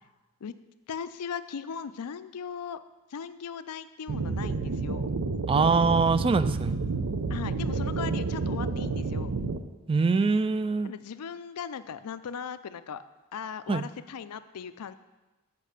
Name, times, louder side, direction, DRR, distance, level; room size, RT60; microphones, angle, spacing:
voice 1, 0.9-2.8 3.1-5.1 7.3-9.3 10.8-13.0 13.3-15.0, left 7 dB, 85° left, 13 dB, 0.5 m, -38 dB
sound 1, 4.1-9.6, right 3 dB, 75° right, 0.6 m, -30 dB
voice 2, 5.5-6.8 9.9-10.9 13.7-13.8, right 4 dB, 25° right, 13 dB, 0.3 m, -23 dB
8.4 x 5.4 x 6.6 m, 1.1 s
head